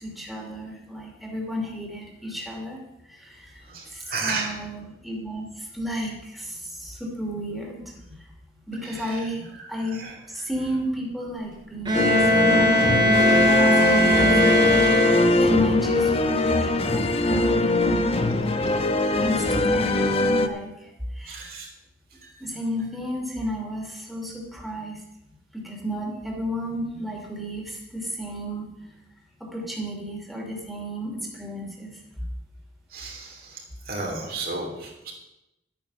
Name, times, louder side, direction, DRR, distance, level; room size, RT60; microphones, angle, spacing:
voice 1, 0.0-2.8 3.1-3.4 3.9-7.8 8.7-10.0 10.3-15.1 15.4-18.2 19.2-20.9 21.2-21.4 22.4-25.0 25.5-28.6 29.4-31.9, equal, ahead, -2 dB, 2.7 m, -32 dB
voice 2, 3.7-4.5 8.9-9.2 10.0-10.1 13.1-13.6 21.3-21.7 22.2-22.3 32.9-33.6 33.9-35.1, right 3 dB, 55° right, 0 dB, 3.0 m, -33 dB
sound 1, 11.9-20.5, left 2 dB, 35° left, 0.9 m, -22 dB
Bowed string instrument, 11.9-15.6, left 1 dB, 25° right, 2.6 m, -20 dB
12.0 x 8.9 x 6.6 m, 0.91 s
head